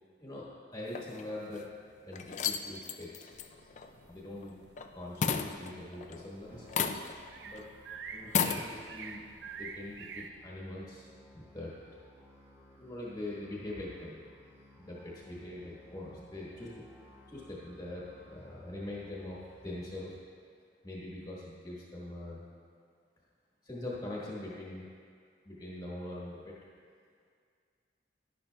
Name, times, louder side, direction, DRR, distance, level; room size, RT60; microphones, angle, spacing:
voice 1, 0.2-1.7 2.0-3.3 4.1-4.5 4.9-6.7 7.4-7.7 8.1-11.1 11.3-11.7 12.8-14.2 14.7-16.8 17.3-20.2 20.8-22.4 23.6-24.9 25.4-26.5, left 1 dB, 20° left, -6 dB, 1.3 m, -43 dB
sound 1, 0.9-1.6 2.1-4.9 5.2-6.3 6.7-7.3 7.6-7.7 8.2-8.6, left 6 dB, 40° left, 0.4 m, -33 dB
sound 2, 3.3-10.3, right 5 dB, 65° right, 0.4 m, -48 dB
Musical instrument, 6.5-20.0, equal, 20° right, 1.6 m, -58 dB
11.0 x 11.0 x 2.2 m, 2.1 s
head